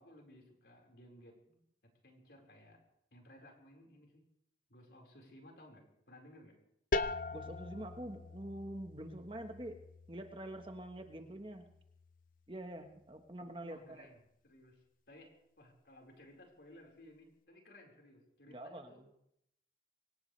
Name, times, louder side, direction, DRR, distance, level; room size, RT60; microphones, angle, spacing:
voice 1, 0.0-1.6 2.0-2.8 3.1-4.2 4.7-6.6 13.6-19.0, left 1 dB, 70° left, 0 dB, 4.7 m, -59 dB
sound 1, 6.9-12.5, left 3 dB, 50° left, 0.5 m, -42 dB
voice 2, 7.3-9.8 10.1-11.7 12.5-14.1 18.5-19.1, right 1 dB, 30° right, 6 dB, 1.3 m, -46 dB
23.5 x 18.0 x 3.3 m, 0.78 s
head